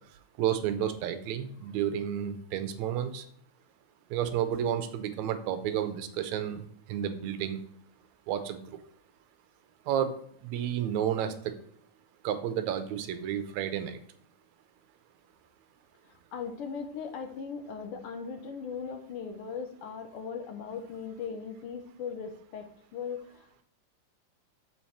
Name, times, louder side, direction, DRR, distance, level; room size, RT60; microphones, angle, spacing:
voice 1, 0.4-3.2 4.1-6.6 6.9-7.6 8.3-8.6 9.9-10.1 10.4-11.5 12.2-14.0, right 10 dB, 80° right, 9 dB, 1.9 m, -31 dB
voice 2, 16.3-23.6, left 6 dB, 75° left, 5 dB, 1.3 m, -39 dB
6.9 x 4.5 x 4.3 m, 0.66 s
omnidirectional pair, 3.4 m